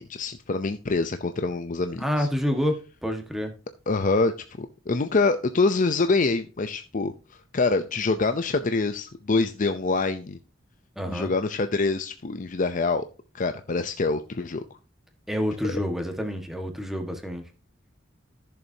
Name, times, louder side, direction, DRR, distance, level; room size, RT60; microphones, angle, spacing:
voice 1, 0.0-2.3 3.9-4.3 4.6-7.1 7.5-10.4 11.1-13.1 13.3-14.6, left 3 dB, 45° left, 9 dB, 0.6 m, -25 dB
voice 2, 2.0-2.8 3.0-3.5 11.0-11.3 15.3-17.4, equal, ahead, 4 dB, 1.5 m, -28 dB
14.0 x 7.0 x 2.8 m, 0.33 s
head